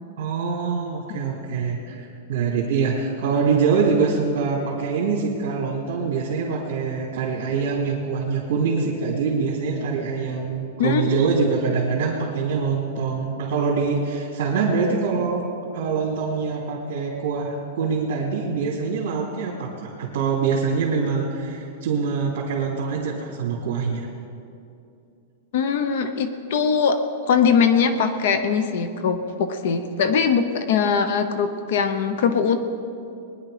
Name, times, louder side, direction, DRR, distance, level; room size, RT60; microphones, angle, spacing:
voice 1, 0.2-15.5 15.7-24.1, right 5 dB, 55° right, -5 dB, 2.6 m, -24 dB
voice 2, 10.8-11.2 25.5-27.0 27.3-32.6, left 6 dB, 55° left, 9 dB, 0.9 m, -21 dB
21.0 x 10.5 x 5.1 m, 2.6 s
supercardioid pair, 170°, 0 cm